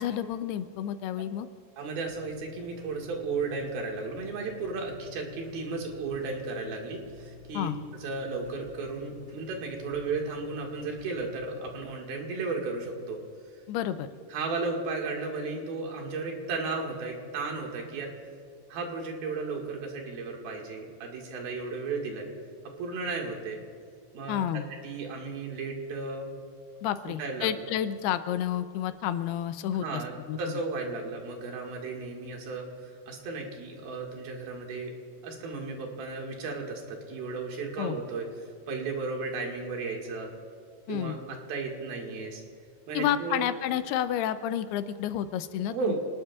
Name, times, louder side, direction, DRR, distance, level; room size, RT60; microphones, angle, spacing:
voice 1, 0.0-1.5 7.5-7.8 13.7-14.1 24.3-24.6 26.8-30.0 30.3-30.4 37.8-38.0 40.9-41.2 42.9-46.0, left 10 dB, 85° left, 11 dB, 2.7 m, -30 dB
voice 2, 1.8-7.7 8.0-13.2 14.3-18.1 18.7-22.3 22.8-23.6 24.1-24.4 24.8-26.3 27.2-27.7 29.7-34.9 35.2-40.3 40.9-42.4 42.9-43.4 45.7-46.0, right 3 dB, 70° right, 0 dB, 3.6 m, -34 dB
sound 1, 2.1-11.8, left 6 dB, 35° right, 2.9 m, -50 dB
27.5 x 19.5 x 2.4 m, 2.2 s
omnidirectional pair, 4.6 m